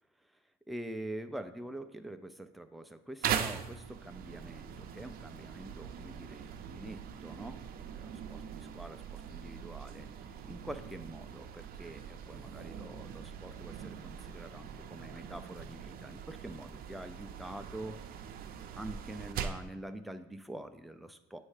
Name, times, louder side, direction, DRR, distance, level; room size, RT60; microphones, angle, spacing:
voice 1, 0.7-18.1 18.8-21.4, right 1 dB, ahead, 7 dB, 0.4 m, -46 dB
sound 1, 3.2-19.7, right 8 dB, 60° right, 0.6 m, -42 dB
8.4 x 3.2 x 4.9 m, 0.91 s
cardioid pair, 110°, 17 cm